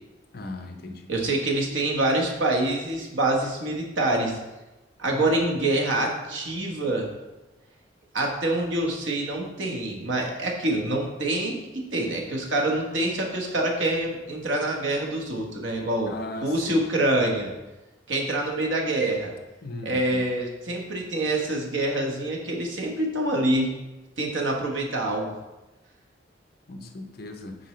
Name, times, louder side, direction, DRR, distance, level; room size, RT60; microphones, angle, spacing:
voice 1, 0.3-1.1 5.1-5.2 16.1-16.8 19.6-20.2 26.7-27.6, left 2 dB, 55° left, 5 dB, 0.7 m, -37 dB
voice 2, 1.1-4.4 5.0-7.1 8.1-16.1 16.4-17.5 18.1-19.3 19.8-23.7 24.2-25.3, right 1 dB, 85° right, 0 dB, 1.2 m, -26 dB
7.9 x 4.5 x 3.2 m, 1.1 s
head